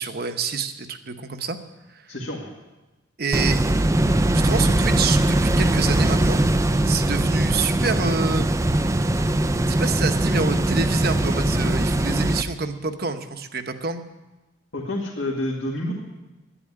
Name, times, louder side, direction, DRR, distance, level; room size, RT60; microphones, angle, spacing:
voice 1, 0.0-1.6 3.2-3.6 4.3-6.4 6.9-8.5 9.7-14.0, right 4 dB, 50° right, 7 dB, 1.0 m, -27 dB
voice 2, 2.1-2.5 14.7-15.9, left 1 dB, 70° left, -4 dB, 2.2 m, -28 dB
sound 1, 3.3-12.4, right 1 dB, 15° right, 0.5 m, -21 dB
11.0 x 9.7 x 9.9 m, 1.1 s
head